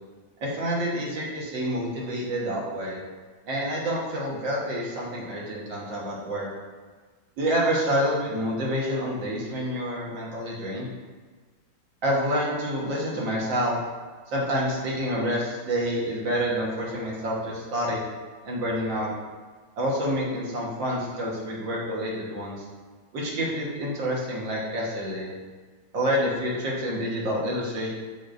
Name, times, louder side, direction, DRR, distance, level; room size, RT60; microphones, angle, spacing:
voice 1, 0.4-3.0 3.5-6.5 7.4-10.9 12.0-13.8 14.3-18.0 18.4-19.1 19.8-22.7 23.1-25.3 25.9-27.9, equal, 80° right, -4 dB, 2.2 m, -28 dB
7.8 x 5.6 x 2.6 m, 1.5 s
omnidirectional pair, 2.0 m